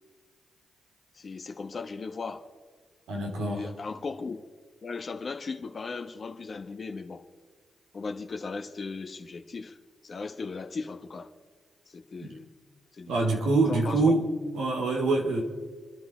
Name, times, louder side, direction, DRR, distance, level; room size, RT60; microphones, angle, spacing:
voice 1, 1.1-2.5 3.4-4.4 4.8-7.2 7.9-9.8 10.0-11.3 11.9-12.5 12.9-13.2 13.7-14.1, left 4 dB, 50° left, 1.2 m, -37 dB
voice 2, 3.1-3.7 12.2-12.4 13.1-14.2 14.5-15.4, right 3 dB, 85° right, 3.0 m, -25 dB
28.0 x 10.5 x 4.5 m
supercardioid pair, 60°, 0 cm